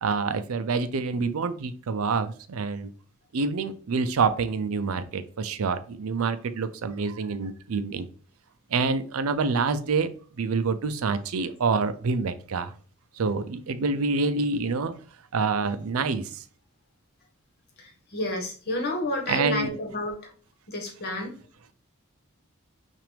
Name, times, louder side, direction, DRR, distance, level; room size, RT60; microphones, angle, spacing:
voice 1, 0.0-2.9 3.3-8.1 8.7-10.1 10.4-12.7 13.2-15.0 15.3-16.4 19.3-19.8, right 4 dB, 80° right, 11 dB, 0.5 m, -27 dB
voice 2, 17.8-20.3 20.7-21.3, left 1 dB, 50° left, 2 dB, 1.4 m, -30 dB
5.8 x 2.6 x 3.3 m, 0.42 s
head